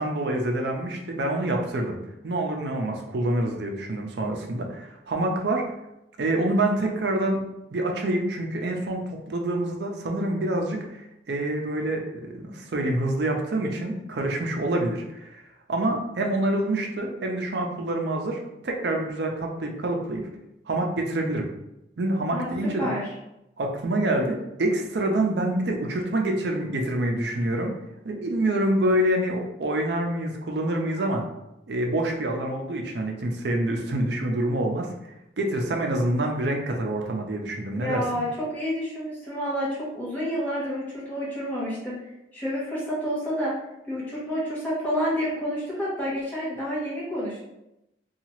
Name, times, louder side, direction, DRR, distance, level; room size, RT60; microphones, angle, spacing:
voice 1, 0.0-2.0 2.2-5.7 6.2-7.4 7.7-15.4 15.7-20.3 20.7-21.5 22.0-22.9 23.6-27.8 28.0-31.3 31.7-34.9 35.4-38.0, right 1 dB, 65° right, 2 dB, 0.5 m, -26 dB
voice 2, 22.8-23.1 37.7-43.5 43.9-47.4, equal, 10° left, -8 dB, 1.0 m, -29 dB
2.8 x 2.3 x 3.0 m, 0.88 s
head